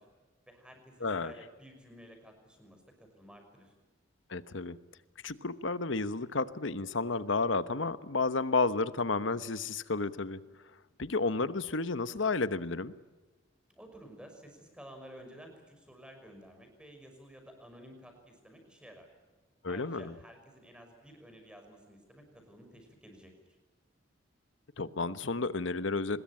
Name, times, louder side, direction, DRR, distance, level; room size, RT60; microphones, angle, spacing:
voice 1, 0.5-3.7 13.7-19.1 19.7-23.3, equal, 5° right, 4 dB, 5.8 m, -53 dB
voice 2, 1.0-1.3 4.3-4.8 5.2-10.4 11.0-12.9 19.6-20.1 24.8-26.2, left 3 dB, 70° left, 13 dB, 1.1 m, -31 dB
24.5 x 21.0 x 8.9 m, 1.2 s
head